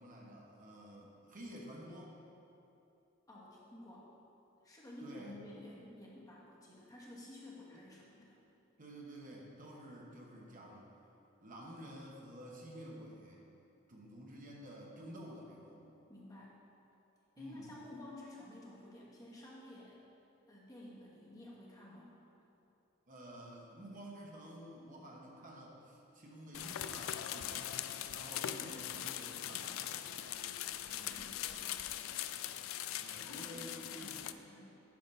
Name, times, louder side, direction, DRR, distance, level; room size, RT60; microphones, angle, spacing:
voice 1, 0.0-2.1 5.0-5.3 7.7-7.8 8.8-10.9 11.4-13.4 13.9-15.8 17.4-17.7 23.1-27.7 28.1-29.9 30.9-31.2 33.0-34.2, equal, 40° right, -2 dB, 1.0 m, -51 dB
voice 2, 3.3-4.1 4.6-8.4 16.1-16.6 17.4-20.0 20.5-22.2 31.1-31.8 33.2-34.8, left 1 dB, 20° left, -5 dB, 1.2 m, -52 dB
sound 1, 26.5-34.3, left 11 dB, 75° left, 0.3 m, -41 dB
10.5 x 3.8 x 5.3 m, 2.9 s
head